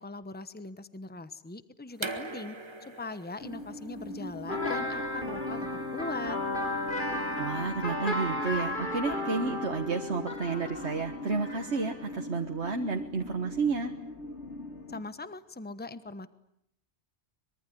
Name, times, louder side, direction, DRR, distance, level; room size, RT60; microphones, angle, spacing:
voice 1, 0.0-2.6 3.0-5.7 5.9-6.4 14.9-16.3, left 3 dB, 10° left, 13 dB, 1.1 m, -40 dB
sound 1, 1.9-7.5, right 2 dB, 25° right, 1.5 m, -43 dB
sound 2, 3.4-15.0, left 2 dB, 75° left, 2.6 m, -42 dB
sound 3, 4.5-12.2, left 2 dB, 45° left, 3.2 m, -34 dB
voice 2, 7.4-13.9, right 4 dB, 70° right, 4 dB, 1.8 m, -31 dB
24.5 x 23.0 x 9.9 m, 0.76 s
omnidirectional pair, 1.2 m